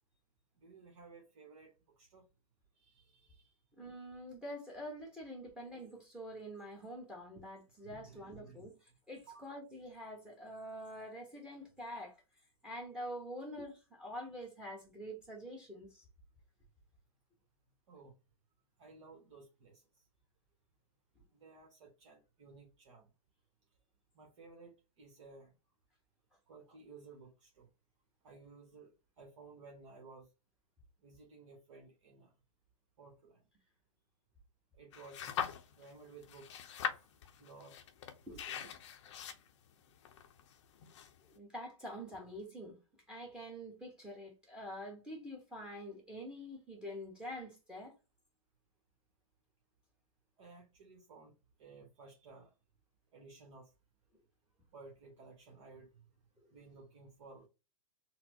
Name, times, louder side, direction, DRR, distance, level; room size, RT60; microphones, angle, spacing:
voice 1, 0.6-2.3 2.7-3.5 7.8-8.7 9.3-9.5 17.9-18.1 18.8-19.9 21.3-23.1 24.1-25.5 26.5-27.7 28.2-30.3 31.0-32.3 33.0-33.4 34.7-35.3 35.7-36.6 37.4-37.8 38.3-38.7 50.4-52.5 53.1-53.7 54.7-56.0 56.5-57.5, right 4 dB, 55° right, 1.1 m, -56 dB
voice 2, 3.8-8.7 9.1-12.2 12.6-16.0 36.9-37.0 38.3-38.4 41.2-42.8 43.1-47.9, equal, 5° right, 1.0 m, -46 dB
sound 1, 34.9-35.9 36.2-41.4, left 8 dB, 55° left, 0.6 m, -42 dB
4.2 x 2.0 x 2.7 m
hypercardioid pair, 120°, 18 cm